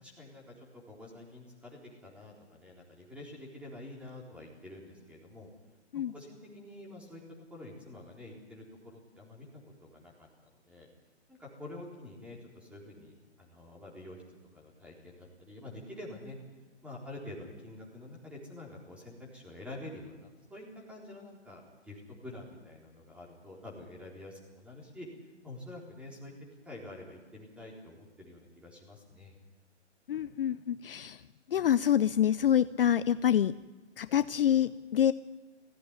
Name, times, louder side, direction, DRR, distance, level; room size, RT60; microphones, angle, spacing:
voice 1, 0.0-5.5 5.9-7.2 7.5-10.9 11.3-14.2 14.5-16.4 16.8-25.1 25.4-26.3 26.6-29.3, left 1 dB, 5° right, -2 dB, 4.0 m, -47 dB
voice 2, 30.1-31.2 31.5-33.5 34.0-35.1, left 10 dB, 55° left, 15 dB, 0.6 m, -26 dB
18.5 x 15.5 x 9.8 m, 1.3 s
hypercardioid pair, 150°, 35 cm